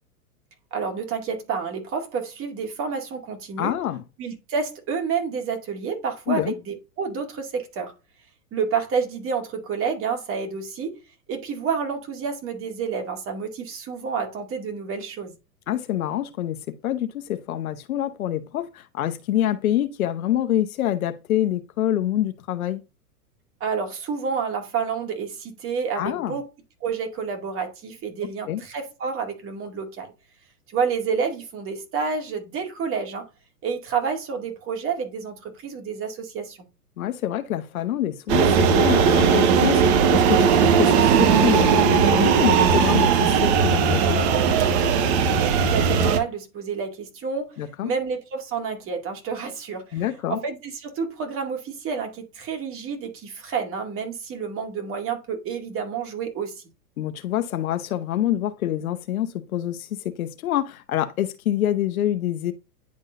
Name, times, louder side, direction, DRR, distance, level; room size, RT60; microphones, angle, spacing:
voice 1, 0.7-3.7 4.2-7.9 8.5-10.9 11.3-15.4 23.6-26.5 26.8-30.1 30.7-33.3 33.6-36.6 45.0-47.6 47.8-56.6, right 6 dB, 25° right, 2.2 m, -29 dB
voice 2, 3.6-4.0 6.3-6.5 15.7-22.8 26.0-26.4 28.5-28.6 37.0-39.8 40.1-44.2 47.6-47.9 49.9-50.4 57.0-62.5, left 12 dB, 60° left, 1.0 m, -26 dB
sound 1, 38.3-46.2, right 6 dB, 45° right, 1.1 m, -18 dB
10.5 x 3.7 x 2.6 m
hypercardioid pair, 115°, 47 cm